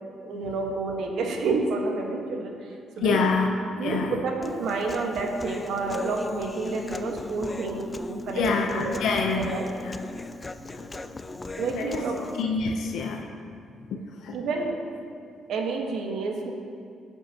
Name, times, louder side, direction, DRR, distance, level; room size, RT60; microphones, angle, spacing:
voice 1, 0.2-2.5 3.0-3.2 3.8-8.4 8.7-8.9 9.3-9.7 11.6-12.2 14.3-14.8 15.5-16.5, right 3 dB, 75° right, 1 dB, 1.5 m, -29 dB
voice 2, 3.0-3.5 3.8-4.2 8.3-9.6 9.8-9.9 10.7-10.9 11.7-12.0 12.3-13.3 14.2-14.3, left 4 dB, 80° left, 2 dB, 0.9 m, -26 dB
Human voice, 4.4-12.4, left 3 dB, 25° left, 0.5 m, -38 dB
18.5 x 7.9 x 3.0 m, 2.3 s
cardioid pair, 90°, 0 cm